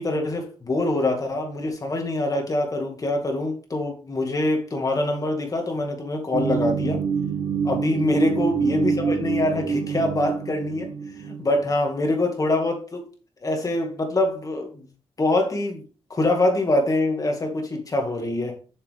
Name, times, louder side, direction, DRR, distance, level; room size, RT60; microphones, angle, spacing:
voice 1, 0.0-7.0 7.6-13.1 13.4-14.9 15.2-15.8 16.1-18.6, left 2 dB, 35° left, 2.2 m, -24 dB
sound 1, 6.3-11.7, right 5 dB, 90° right, 1.3 m, -26 dB
6.9 x 6.8 x 3.6 m
wide cardioid pair, 105°, 10 cm